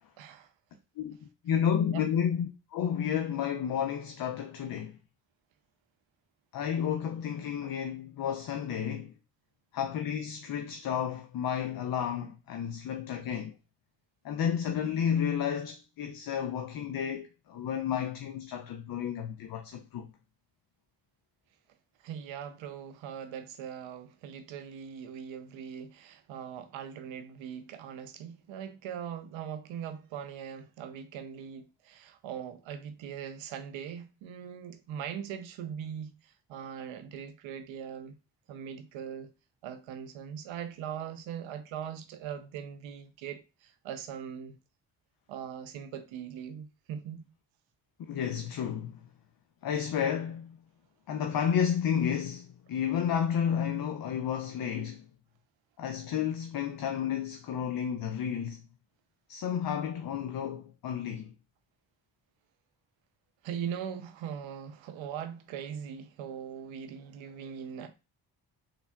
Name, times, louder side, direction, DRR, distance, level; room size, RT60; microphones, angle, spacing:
voice 1, 0.2-0.5 1.9-2.0 22.0-38.1 38.5-39.3 39.6-44.6 45.3-47.3 63.4-67.9, right 8 dB, 85° right, 0.6 m, -41 dB
voice 2, 1.4-5.0 6.5-9.1 9.7-13.5 14.2-20.1 48.1-49.0 49.6-50.6 51.1-55.0 55.8-58.6 59.3-61.3, left 8 dB, 50° left, 0.5 m, -31 dB
3.4 x 2.3 x 2.2 m
supercardioid pair, 55°, 45 cm